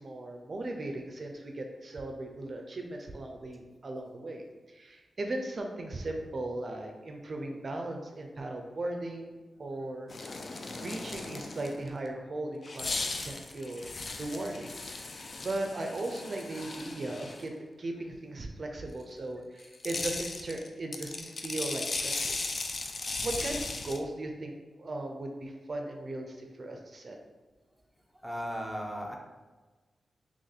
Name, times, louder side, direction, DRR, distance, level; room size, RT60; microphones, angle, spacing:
voice 1, 0.0-10.1 10.4-13.9 14.2-14.7 15.4-22.4 23.2-27.2, right 2 dB, 50° right, 2 dB, 0.4 m, -37 dB
sound 1, 10.1-11.9 12.6-17.5 19.6-24.0, left 3 dB, 50° left, 0.3 m, -37 dB
voice 2, 28.2-29.1, equal, 5° left, 0 dB, 0.6 m, -36 dB
2.9 x 2.6 x 4.0 m, 1.3 s
cardioid pair, 75°, 0 cm